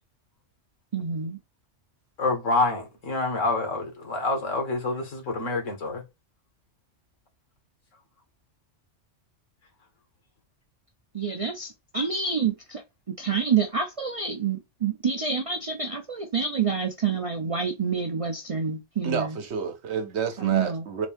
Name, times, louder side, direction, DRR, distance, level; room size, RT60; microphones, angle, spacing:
voice 1, 0.9-1.4 11.1-12.8 13.1-19.4 20.4-20.8, right 6 dB, 45° right, 0.4 m, -27 dB
voice 2, 2.2-6.0, left 2 dB, 85° left, 1.8 m, -27 dB
voice 3, 19.0-21.1, right 6 dB, 65° right, 1.0 m, -30 dB
3.9 x 2.7 x 3.4 m
omnidirectional pair, 1.3 m